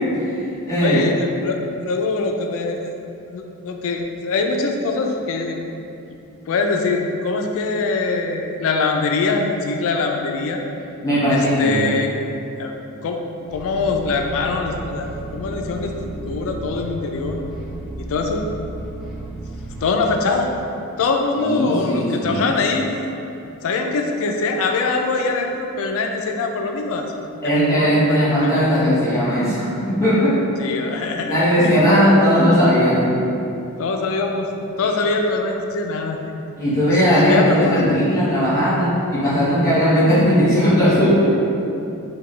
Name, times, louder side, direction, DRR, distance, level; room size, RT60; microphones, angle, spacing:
voice 1, 0.0-1.0 11.0-11.9 21.4-22.5 27.4-30.3 31.2-33.0 36.6-41.3, equal, 15° left, -11 dB, 1.3 m, -17 dB
voice 2, 0.8-2.9 3.3-5.6 6.1-6.2 6.5-10.6 11.3-12.2 12.6-17.4 18.0-18.5 19.8-20.5 21.0-22.9 23.6-27.1 27.4-28.8 30.6-31.5 33.8-36.3 37.2-37.9, left 3 dB, 65° left, 3 dB, 0.3 m, -23 dB
sound 1, 13.5-19.9, right 2 dB, ahead, 0.5 m, -34 dB
3.9 x 2.3 x 3.1 m, 2.7 s
head